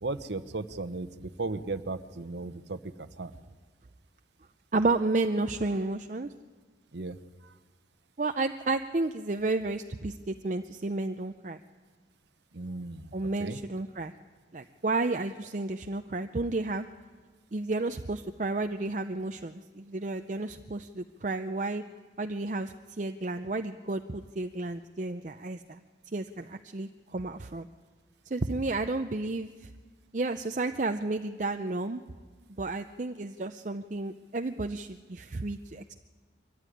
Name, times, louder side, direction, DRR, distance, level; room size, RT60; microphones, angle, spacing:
voice 1, 0.0-3.3 5.8-6.0 6.9-7.5 12.5-13.6, right 3 dB, 75° right, 12 dB, 0.9 m, -36 dB
voice 2, 4.7-6.3 8.2-11.6 13.1-14.1 14.5-16.9 17.5-21.8 22.2-25.8 26.1-27.7 28.3-29.7 30.1-32.0 32.6-35.9, right 2 dB, 40° right, 7 dB, 0.6 m, -32 dB
23.5 x 14.5 x 9.9 m, 1.4 s
head